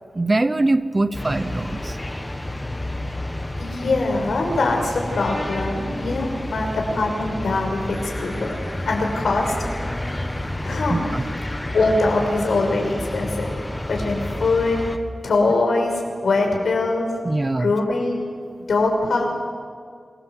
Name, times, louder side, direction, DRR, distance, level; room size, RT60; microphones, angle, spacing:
voice 1, 0.1-2.0 10.9-11.3 17.2-17.7, right 2 dB, 25° right, 12 dB, 0.8 m, -22 dB
sound 1, 1.1-15.0, left 1 dB, 15° left, 1.6 m, -30 dB
voice 2, 3.6-8.6 8.8-9.5 10.6-11.0 11.7-13.5 13.9-14.8 15.2-17.1 17.6-18.2 18.7-19.3, left 3 dB, 85° left, 1 dB, 6.1 m, -22 dB
27.5 x 23.5 x 8.2 m, 2.1 s
wide cardioid pair, 150°, 0 cm